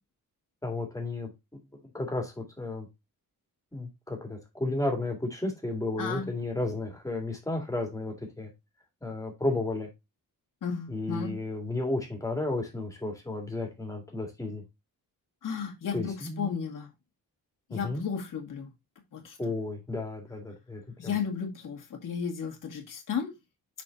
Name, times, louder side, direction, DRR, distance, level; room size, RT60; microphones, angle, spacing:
voice 1, 0.6-1.3 1.9-2.9 3.7-8.5 9.0-9.9 10.9-14.6 15.9-16.5 17.7-18.0 19.4-21.2, left 2 dB, 10° left, 2 dB, 2.0 m, -33 dB
voice 2, 10.6-11.3 15.4-16.9 17.7-18.7 19.1-19.4 21.0-23.3, left 6 dB, 60° left, 1 dB, 1.9 m, -33 dB
6.1 x 4.2 x 3.9 m, 0.22 s
wide cardioid pair, 155°, 35 cm